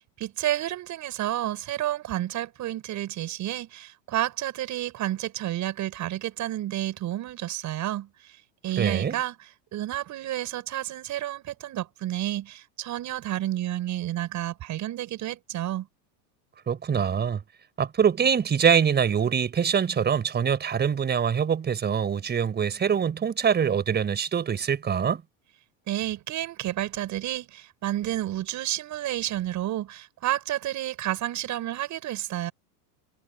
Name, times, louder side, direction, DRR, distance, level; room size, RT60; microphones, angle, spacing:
voice 1, 0.2-8.1 8.6-9.3 9.7-15.9 25.9-32.5, right 13 dB, 35° right, 7.2 m, -30 dB
voice 2, 8.8-9.2 16.7-17.4 17.8-25.2, right 7 dB, 20° right, 4.8 m, -24 dB
supercardioid pair, 145°, 47 cm